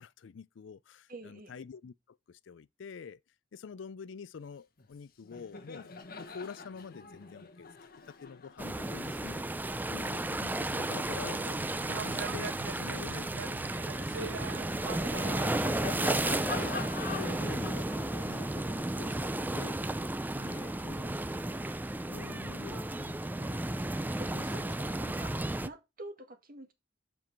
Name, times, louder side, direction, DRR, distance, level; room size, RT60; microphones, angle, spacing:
voice 1, 0.0-3.2 3.5-5.9 6.2-7.7 8.1-9.4 9.9-11.6 11.9-13.7 14.0-16.8 17.1-19.8 20.4-21.2 22.1-23.7 24.3-24.7, left 6 dB, 80° left, 0.4 m, -47 dB
voice 2, 1.1-1.6 17.1-17.8 22.6-22.8 24.2-25.4 25.6-26.7, right 1 dB, 50° right, 1.6 m, -47 dB
Laughter, 4.8-5.0 5.2-11.9 12.5-20.6, left 4 dB, 50° left, 1.1 m, -46 dB
sound 1, 8.6-25.7, right 1 dB, 10° right, 0.4 m, -33 dB
sound 2, 11.3-16.2, right 5 dB, 80° right, 0.6 m, -42 dB
7.4 x 4.7 x 5.8 m
head